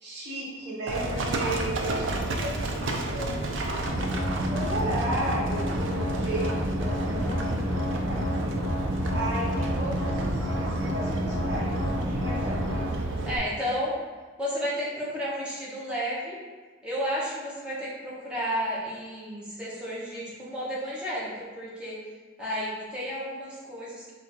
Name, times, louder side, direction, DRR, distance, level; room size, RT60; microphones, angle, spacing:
voice 1, 0.0-3.6 4.5-7.6 8.0-8.2 9.1-11.7 12.0-12.9, right 1 dB, 60° right, -7 dB, 1.3 m, -34 dB
Livestock farm animals working animals, 0.9-13.4, right 2 dB, 80° right, 0.5 m, -31 dB
sound 1, 3.8-12.9, equal, 10° left, 1.1 m, -30 dB
voice 2, 7.0-7.5 13.2-14.0 14.4-16.4 16.8-21.9 22.4-24.1, equal, 5° right, -8 dB, 1.0 m, -32 dB
3.5 x 2.5 x 4.4 m, 1.4 s
head